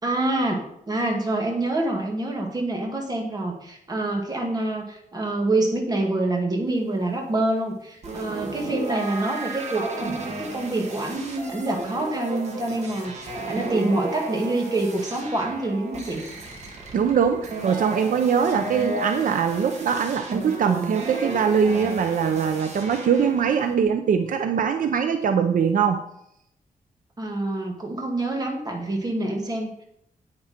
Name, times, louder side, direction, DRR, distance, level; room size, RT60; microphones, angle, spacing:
voice 1, 0.0-16.2 27.2-29.8, right 2 dB, 25° right, 1 dB, 2.3 m, -26 dB
sound 1, 8.0-23.7, right 2 dB, 50° right, 2.1 m, -34 dB
voice 2, 16.9-26.0, right 7 dB, 70° right, 7 dB, 0.7 m, -22 dB
9.4 x 8.9 x 4.4 m, 0.77 s
wide cardioid pair, 165°, 14 cm